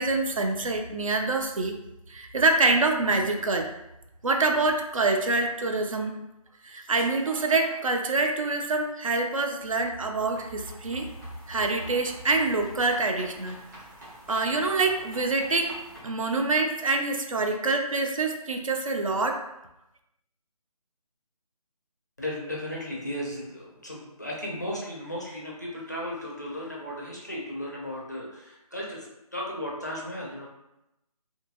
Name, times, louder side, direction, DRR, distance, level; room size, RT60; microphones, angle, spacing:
voice 1, 0.0-1.8 2.1-3.7 4.2-6.1 6.6-11.1 11.5-13.6 14.3-15.8 16.0-19.4, right 3 dB, 60° right, 4 dB, 0.4 m, -26 dB
sound 1, 10.3-16.0, equal, 30° right, 0.7 m, -47 dB
voice 2, 22.2-29.1 29.3-30.5, left 1 dB, 30° left, -3 dB, 0.4 m, -35 dB
2.7 x 2.6 x 2.5 m, 0.90 s
figure-of-eight pair, 175°, 19 cm